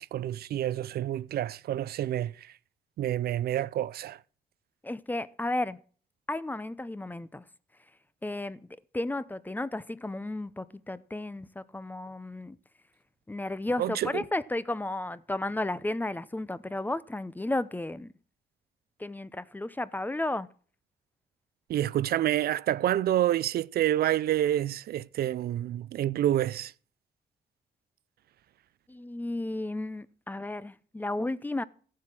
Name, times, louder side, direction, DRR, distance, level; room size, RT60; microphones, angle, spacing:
voice 1, 0.0-2.5 3.0-4.2 13.8-14.2 21.7-26.7, right 12 dB, 70° right, 0.4 m, -28 dB
voice 2, 4.8-5.8 6.3-7.4 8.2-8.6 8.9-12.6 13.3-18.1 19.0-20.5 28.9-31.6, left 2 dB, 10° left, 0.6 m, -33 dB
14.5 x 7.5 x 6.1 m
cardioid pair, 110°, 17 cm